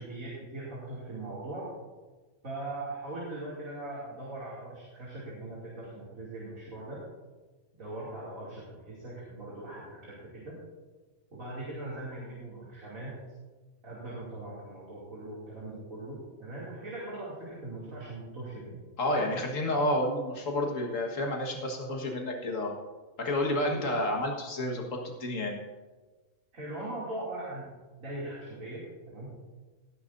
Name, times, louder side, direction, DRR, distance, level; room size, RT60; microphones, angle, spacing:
voice 1, 0.0-1.7 2.4-7.0 7.8-10.6 11.3-13.2 13.8-18.8 19.1-19.3 23.7-23.9 24.7-24.9 26.5-27.7 28.0-29.3, right 2 dB, 80° right, -7 dB, 3.2 m, -40 dB
voice 2, 19.0-22.8 23.2-25.6, left 1 dB, 70° left, 1 dB, 2.0 m, -30 dB
17.5 x 10.0 x 2.7 m, 1.2 s
omnidirectional pair, 1.4 m